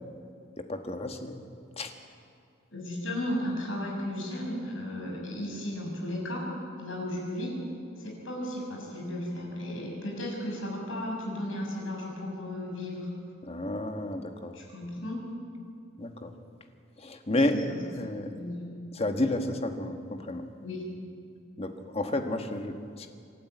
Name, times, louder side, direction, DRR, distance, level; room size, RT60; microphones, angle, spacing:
voice 1, 0.6-1.4 1.8-1.9 13.5-14.5 16.0-16.3 17.0-17.6 17.9-18.3 18.9-20.5 21.6-23.1, left 1 dB, 30° left, 6 dB, 1.5 m, -31 dB
voice 2, 2.7-6.4 6.8-7.6 8.0-13.1 14.5-15.2 17.5-17.8 18.2-18.7 20.6-20.8, left 1 dB, 80° left, -1 dB, 6.6 m, -35 dB
26.5 x 12.0 x 9.2 m, 2.4 s
head